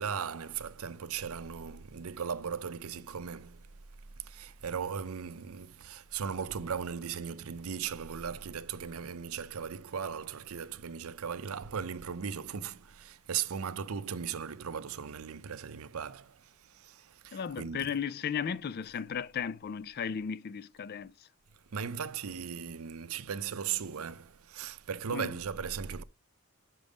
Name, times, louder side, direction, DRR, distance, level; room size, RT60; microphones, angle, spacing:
voice 1, 0.0-3.6 4.2-17.9 21.7-26.0, right 7 dB, 75° right, 0.6 m, -37 dB
voice 2, 17.3-21.1 25.1-25.3, left 7 dB, 45° left, 0.4 m, -35 dB
6.0 x 5.3 x 5.0 m
head